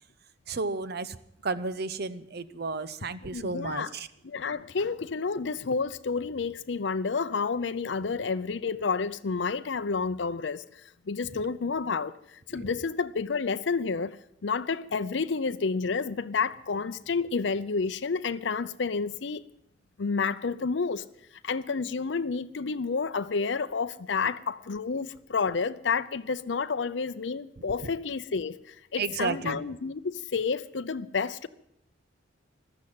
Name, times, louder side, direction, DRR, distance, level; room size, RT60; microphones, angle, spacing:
voice 1, 0.5-1.2 1.4-4.1 12.5-12.7 27.8-27.9 29.0-29.6, right 3 dB, 60° right, 0.8 m, -32 dB
voice 2, 3.3-3.9 4.2-14.2 14.4-19.5 20.0-21.0 21.4-31.5, left 5 dB, 70° left, 0.6 m, -30 dB
15.0 x 12.5 x 7.6 m
head